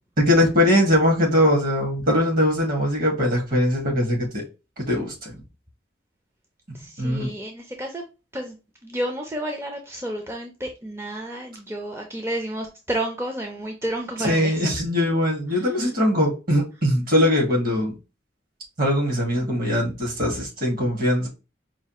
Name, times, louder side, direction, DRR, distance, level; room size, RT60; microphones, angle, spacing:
voice 1, 0.2-4.4 4.8-5.4 7.0-7.3 14.2-17.9 18.8-21.3, left 1 dB, 55° right, 1.7 m, -21 dB
voice 2, 6.7-8.6 8.8-14.8 15.5-15.9, right 1 dB, 15° right, 0.5 m, -31 dB
4.9 x 2.3 x 2.9 m
head